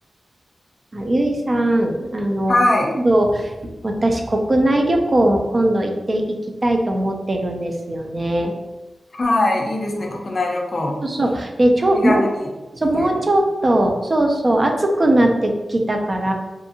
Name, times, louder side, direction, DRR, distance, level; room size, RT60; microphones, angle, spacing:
voice 1, 0.9-2.6 2.9-6.4 6.6-8.5 9.8-10.2 11.0-12.3 12.7-16.3, right 1 dB, 40° right, 3 dB, 0.4 m, -19 dB
voice 2, 2.5-2.9 9.1-11.0 11.9-12.3 13.0-13.1, left 2 dB, 50° left, 1 dB, 0.4 m, -20 dB
2.6 x 2.4 x 2.7 m, 1.1 s
wide cardioid pair, 95°, 0 cm